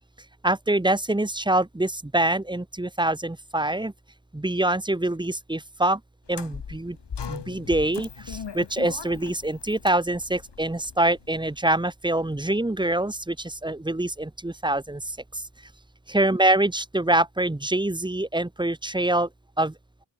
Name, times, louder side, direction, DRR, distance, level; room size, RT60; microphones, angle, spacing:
voice 1, 0.4-3.9 4.3-6.0 6.3-7.0 7.3-15.0 16.1-19.3 19.6-19.7, right 1 dB, 10° right, 1.0 m, -25 dB
sound 1, 6.3-11.5, left 7 dB, 80° left, 2.6 m, -39 dB
open air
wide cardioid pair, 125°, 41 cm